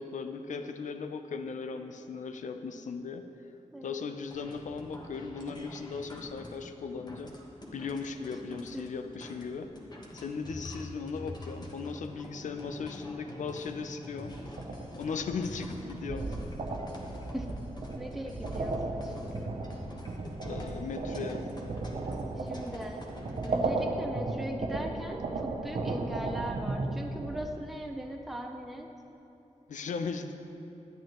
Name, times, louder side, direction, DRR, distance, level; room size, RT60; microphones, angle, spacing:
voice 1, 0.0-3.3 3.8-7.3 7.7-9.7 10.1-14.4 15.0-16.4 20.4-21.4 29.7-30.3, left 5 dB, 85° left, 7 dB, 0.5 m, -37 dB
sound 1, 4.3-23.5, left 1 dB, 35° left, 1.2 m, -46 dB
sound 2, 14.3-27.5, right 3 dB, 60° right, 0.6 m, -35 dB
voice 2, 17.9-19.5 22.4-23.0 23.4-28.9, equal, ahead, 2 dB, 0.6 m, -39 dB
10.5 x 8.9 x 3.0 m, 2.9 s
wide cardioid pair, 95°, 12 cm